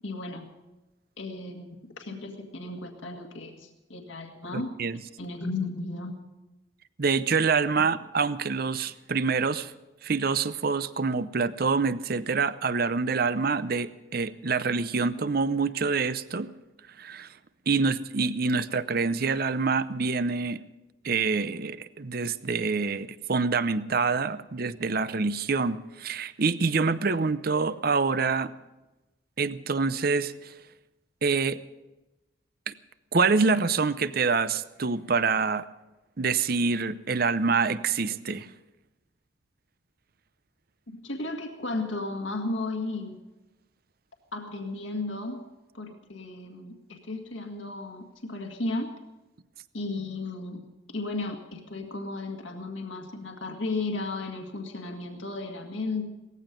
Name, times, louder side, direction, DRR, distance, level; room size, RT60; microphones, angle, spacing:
voice 1, 0.0-0.5 1.2-1.7 2.0-4.7 5.2-6.1 41.0-43.2 44.3-45.4 45.7-48.9 49.7-50.6 50.9-56.1, left 2 dB, 75° left, 3 dB, 1.9 m, -34 dB
voice 2, 4.5-5.0 7.0-9.7 10.0-16.5 17.0-17.3 17.7-20.6 21.0-28.5 29.4-30.5 31.2-31.6 32.7-32.8 33.1-35.6 36.2-38.5, right 4 dB, 50° right, 14 dB, 0.7 m, -26 dB
18.5 x 15.0 x 5.2 m, 1.0 s
head